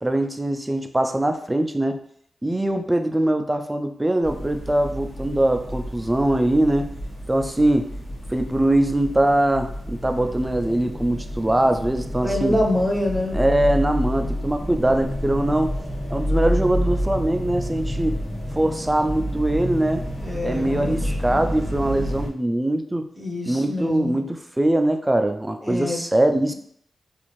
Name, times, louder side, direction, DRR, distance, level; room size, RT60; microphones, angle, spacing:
voice 1, 0.0-2.0 2.4-6.9 7.3-7.9 8.3-12.6 13.3-15.7 16.1-18.2 18.6-20.1 20.4-23.1 23.5-26.5, right 1 dB, 15° right, 6 dB, 0.3 m, -22 dB
sound 1, 4.2-22.3, equal, 85° left, 1.3 m, -29 dB
voice 2, 12.2-13.4 20.2-21.1 23.2-24.2 25.6-26.0, left 1 dB, 5° left, 0 dB, 0.7 m, -25 dB
2.5 x 2.4 x 3.0 m, 0.67 s
cardioid pair, 65°, 0 cm